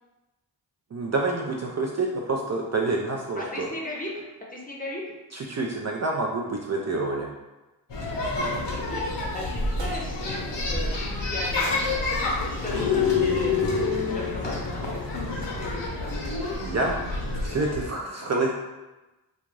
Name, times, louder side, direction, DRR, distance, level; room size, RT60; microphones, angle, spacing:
voice 1, 0.9-3.7 5.3-7.3 16.6-17.0 17.4-18.5, right 3 dB, 40° right, -1 dB, 0.4 m, -27 dB
voice 2, 3.4-4.2 4.5-5.0 8.7-16.1, left 1 dB, 20° left, -3 dB, 0.7 m, -37 dB
sound 1, 7.9-17.9, left 4 dB, 70° left, 0.8 m, -28 dB
sound 2, 8.5-13.7, right 1 dB, 80° right, 0.7 m, -35 dB
2.5 x 2.4 x 3.1 m, 1.1 s
cardioid pair, 40°, 44 cm